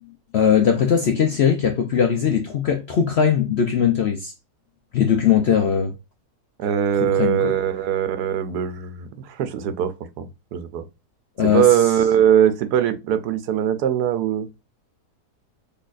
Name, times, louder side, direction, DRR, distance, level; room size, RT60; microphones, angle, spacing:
voice 1, 0.3-4.3 4.9-5.9 7.0-7.5 11.4-11.7, left 8 dB, 65° left, 0.6 m, -19 dB
voice 2, 6.6-10.8 11.5-14.5, right 9 dB, 80° right, 1.2 m, -21 dB
4.1 x 3.1 x 2.4 m
omnidirectional pair, 1.7 m